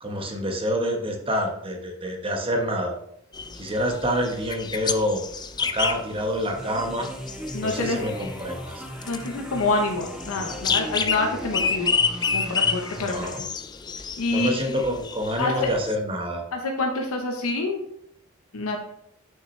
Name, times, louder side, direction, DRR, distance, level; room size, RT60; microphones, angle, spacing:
voice 1, 0.0-2.9 3.5-5.2 5.6-7.1 7.6-8.8 13.0-13.5 14.3-16.4, equal, 25° right, 3 dB, 1.0 m, -27 dB
sound 1, 3.3-15.9, left 5 dB, 20° left, 0.3 m, -30 dB
sound 2, 6.5-13.4, equal, 5° right, 0.7 m, -38 dB
voice 2, 7.5-8.0 9.0-12.0 12.3-13.3 14.2-14.6 15.4-15.7 16.5-17.8 18.5-18.8, left 3 dB, 85° left, 2 dB, 0.8 m, -26 dB
5.8 x 5.8 x 3.1 m, 0.73 s
head